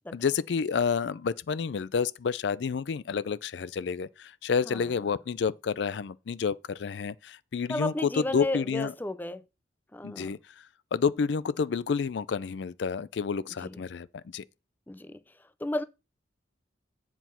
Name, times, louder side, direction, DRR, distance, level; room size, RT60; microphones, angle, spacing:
voice 1, 0.1-8.9 10.0-10.6 10.9-14.4, left 6 dB, 70° left, 0.4 m, -29 dB
voice 2, 7.7-9.4 9.9-10.3 13.6-13.8 14.9-15.2 15.6-15.8, left 1 dB, 10° left, 0.4 m, -33 dB
7.9 x 4.7 x 5.6 m
head